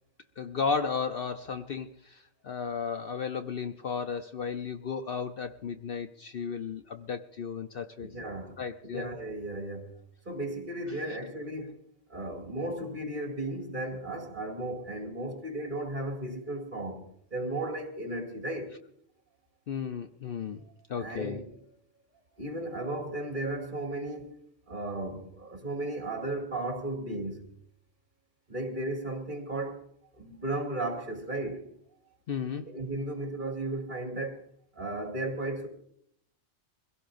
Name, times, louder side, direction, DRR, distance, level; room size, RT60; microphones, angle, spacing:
voice 1, 0.4-8.1 8.6-9.1 19.7-20.6 20.9-21.4 32.3-32.7, left 6 dB, 55° left, 0.8 m, -34 dB
voice 2, 8.0-8.6 8.8-9.9 10.3-11.8 12.1-17.0 17.3-18.7 21.0-21.6 22.4-27.5 28.5-29.8 30.1-31.7 32.7-34.4 34.7-35.7, right 1 dB, 40° right, 2.6 m, -35 dB
24.0 x 16.5 x 2.6 m
omnidirectional pair, 1.2 m